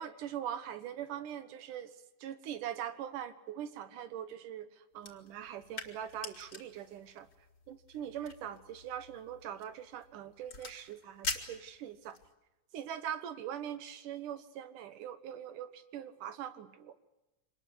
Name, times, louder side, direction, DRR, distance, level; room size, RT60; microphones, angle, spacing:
voice 1, 0.0-1.9 2.2-7.3 7.7-12.2 12.7-16.9, right 10 dB, 90° right, 11 dB, 2.8 m, -42 dB
sound 1, 5.0-12.3, left 4 dB, 35° left, 2.7 m, -45 dB
25.5 x 20.0 x 8.2 m, 1.0 s
omnidirectional pair, 3.5 m